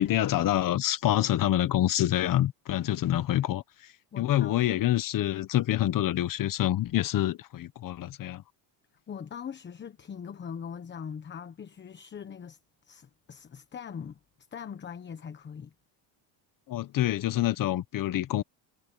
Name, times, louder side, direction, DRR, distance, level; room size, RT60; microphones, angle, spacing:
voice 1, 0.0-8.4 16.7-18.4, left 13 dB, 45° left, 1.2 m, -27 dB
voice 2, 4.1-4.8 5.7-5.8 9.1-12.6 12.8-14.2 14.5-15.7, left 7 dB, 25° left, 1.1 m, -41 dB
cardioid pair, 135°, 46 cm